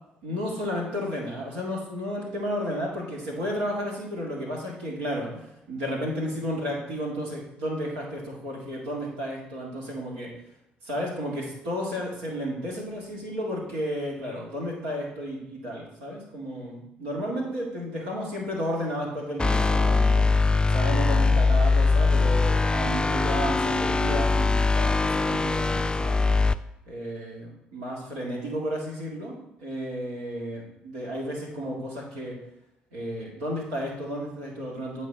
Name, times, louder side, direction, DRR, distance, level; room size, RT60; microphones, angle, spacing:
voice 1, 0.2-5.4 5.7-10.3 10.8-20.3 20.7-26.2 26.9-29.3 29.6-32.4 32.9-35.1, equal, 75° right, -3 dB, 1.9 m, -32 dB
sound 1, 19.4-26.5, left 3 dB, 20° left, 0.3 m, -22 dB
8.3 x 4.2 x 4.1 m, 0.86 s
figure-of-eight pair, 45°, 5 cm